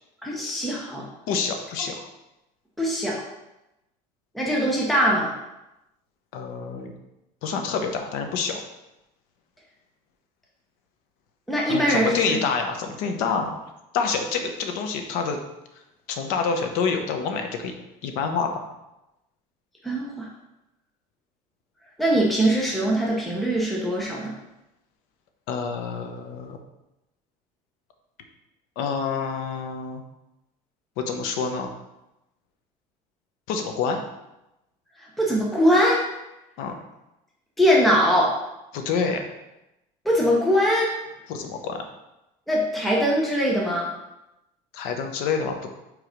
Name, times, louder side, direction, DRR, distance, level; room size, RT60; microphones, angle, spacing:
voice 1, 0.2-1.0 1.8-1.9 2.8-3.2 4.3-5.3 11.5-12.4 19.8-20.3 22.0-24.3 35.2-36.0 37.6-38.3 40.0-40.9 42.5-43.9, equal, ahead, -4 dB, 0.9 m, -22 dB
voice 2, 1.3-2.1 6.3-6.9 7.4-8.6 11.7-13.6 13.9-15.4 16.1-17.7 18.0-18.6 25.5-26.6 28.8-30.0 31.0-31.7 33.5-34.0 36.6-36.8 38.7-39.2 41.3-41.8 44.7-45.7, left 5 dB, 75° left, 5 dB, 1.0 m, -27 dB
4.8 x 4.6 x 5.2 m, 0.93 s
cardioid pair, 165°, 15 cm